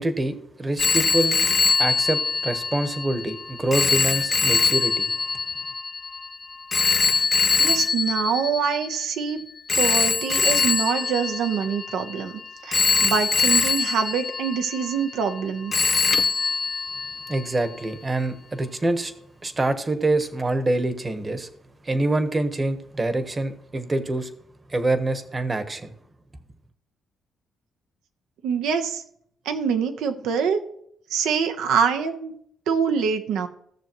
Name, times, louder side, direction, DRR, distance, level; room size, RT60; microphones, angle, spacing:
voice 1, 0.0-1.4 1.8-5.1 17.3-19.1 19.4-21.5 21.8-24.3 24.7-25.9, right 2 dB, 25° right, 1.1 m, -25 dB
Telephone, 0.8-9.1 9.7-12.2 12.7-15.4 15.7-17.4, left 4 dB, 35° left, 0.6 m, -23 dB
voice 2, 7.6-9.4 9.7-15.7 28.4-29.0 29.4-30.6 31.1-32.3 32.7-33.5, right 6 dB, 85° right, 1.0 m, -25 dB
16.5 x 6.7 x 3.0 m
cardioid pair, 90°, 0 cm